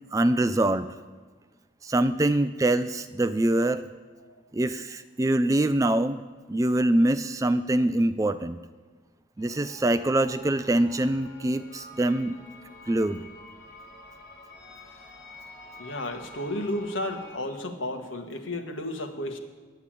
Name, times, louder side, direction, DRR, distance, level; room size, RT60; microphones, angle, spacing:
voice 1, 0.1-0.9 1.8-3.8 4.5-6.2 6.5-8.6 9.4-12.3 12.9-13.2, right 1 dB, 15° right, 12 dB, 0.3 m, -24 dB
sound 1, 9.4-17.4, left 1 dB, 50° left, 4.0 m, -48 dB
voice 2, 15.8-19.4, left 1 dB, 80° left, 4 dB, 1.5 m, -32 dB
10.0 x 8.3 x 8.9 m, 1.4 s
head